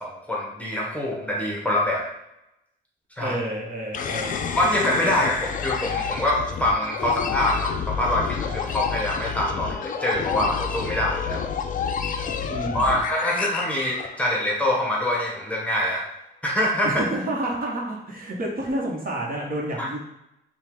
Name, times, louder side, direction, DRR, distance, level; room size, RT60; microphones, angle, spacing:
voice 1, 0.0-2.1 3.2-3.3 4.5-11.4 12.7-16.1 16.4-16.9 19.8-19.9, left 1 dB, 5° left, -2 dB, 1.0 m, -25 dB
voice 2, 3.2-4.6 12.5-13.0 16.8-20.0, right 1 dB, 45° right, -2 dB, 1.2 m, -29 dB
sound 1, 3.9-14.6, left 6 dB, 45° left, 0.4 m, -29 dB
5.4 x 2.4 x 3.6 m, 0.85 s
cardioid pair, 90°, 20 cm